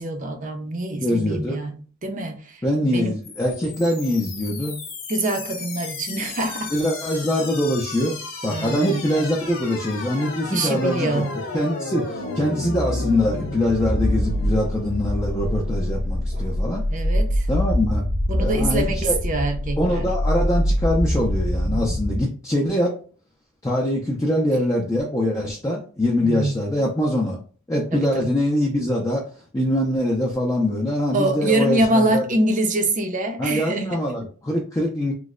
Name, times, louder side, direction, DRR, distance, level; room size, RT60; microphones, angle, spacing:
voice 1, 0.0-2.6 2.9-3.2 5.1-6.7 8.5-9.1 10.5-11.3 16.3-16.5 16.9-17.5 18.3-20.1 26.2-26.5 27.9-28.2 31.1-33.9, right 1 dB, 40° right, 0.5 m, -24 dB
voice 2, 1.0-1.6 2.6-4.8 6.7-8.2 8.4-11.2 11.5-16.8 17.5-18.1 18.4-19.2 19.8-23.0 23.6-27.4 27.7-32.2 33.4-35.1, left 1 dB, 15° left, 0.4 m, -23 dB
sound 1, 3.2-22.2, left 1 dB, 70° left, 0.8 m, -27 dB
3.1 x 2.0 x 3.6 m
head